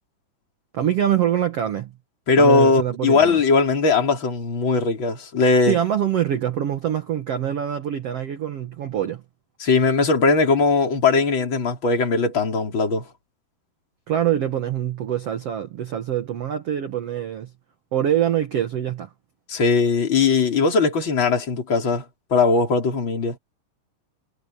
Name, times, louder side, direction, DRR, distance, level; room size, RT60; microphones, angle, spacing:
voice 1, 0.7-1.9 2.4-3.4 5.7-9.2 14.1-17.5 17.9-19.1, right 10 dB, 90° right, 1.3 m, -24 dB
voice 2, 2.3-5.8 9.6-13.0 19.5-22.0 22.3-23.4, left 4 dB, 30° left, 4.7 m, -19 dB
omnidirectional pair, 4.7 m